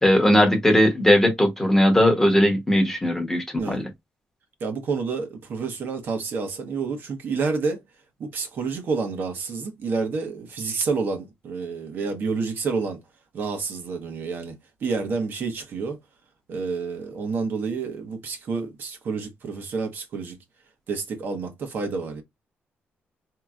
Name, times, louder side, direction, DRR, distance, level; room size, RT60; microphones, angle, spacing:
voice 1, 0.0-3.8, equal, 10° left, 1.0 m, -19 dB
voice 2, 4.6-7.8 8.2-13.0 13.3-14.5 14.8-16.0 16.5-20.4 20.9-22.2, right 4 dB, 55° right, 1.0 m, -29 dB
4.6 x 2.9 x 2.4 m
wide cardioid pair, 165°, 4 cm